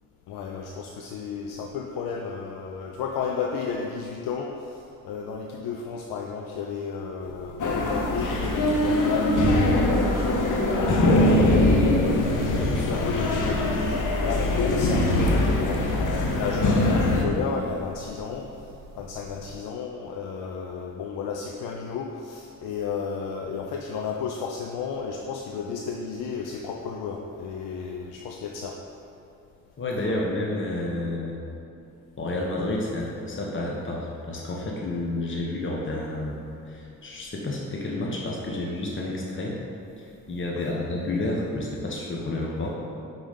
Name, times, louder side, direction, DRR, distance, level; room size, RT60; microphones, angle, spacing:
voice 1, 0.3-18.5 18.9-28.8 30.0-30.2 40.7-40.8, left 6 dB, 75° left, 1 dB, 0.5 m, -33 dB
sound 1, 7.2-19.6, right 1 dB, 90° right, 0.7 m, -40 dB
sound 2, 7.6-17.2, left 1 dB, 55° left, 0.9 m, -22 dB
voice 2, 29.8-31.4 32.2-36.4 36.7-39.5 40.0-42.7, left 2 dB, 30° left, -2 dB, 1.1 m, -30 dB
5.0 x 4.0 x 5.3 m, 2.7 s
hypercardioid pair, 40°, 38 cm